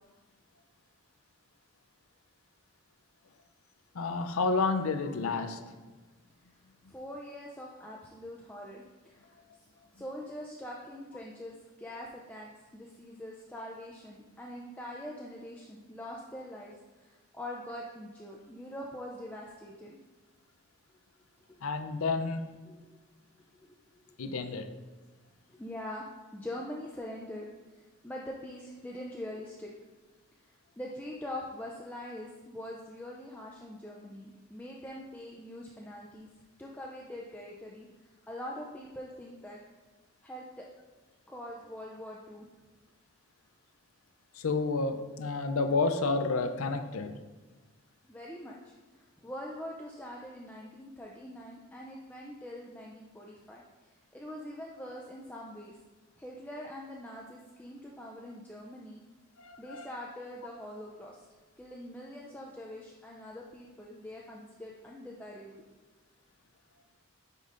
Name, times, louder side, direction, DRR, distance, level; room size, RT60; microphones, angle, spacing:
voice 1, 3.9-5.7 21.6-22.4 24.2-24.7 44.3-47.1 59.4-59.9, left 3 dB, 75° left, 8 dB, 0.5 m, -30 dB
voice 2, 6.9-9.7 9.9-20.0 22.7-22.9 23.7-23.8 24.1-24.2 25.5-27.5 27.7-29.7 30.8-36.3 36.6-39.6 40.2-40.6 41.3-42.5 48.0-55.8 56.2-59.0 59.6-61.3 61.6-65.6, left 1 dB, 5° left, -3 dB, 0.4 m, -43 dB
9.3 x 5.2 x 2.5 m, 1.2 s
head